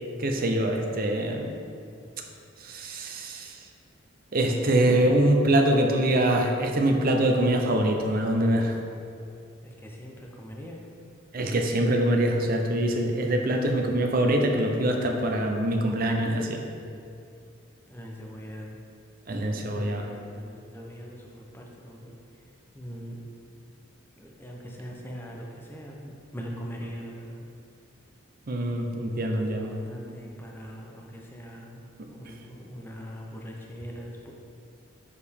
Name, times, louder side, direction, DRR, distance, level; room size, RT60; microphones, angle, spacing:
voice 1, 0.2-1.5 2.6-3.6 4.3-8.7 11.3-16.6 19.3-20.1 28.5-29.7 32.0-32.1, right 1 dB, 45° right, 3 dB, 0.6 m, -24 dB
voice 2, 9.6-10.8 17.9-18.8 19.6-22.2 22.7-23.3 24.2-27.4 29.3-34.3, equal, 10° left, -1 dB, 0.5 m, -42 dB
6.5 x 4.8 x 3.5 m, 2.5 s
head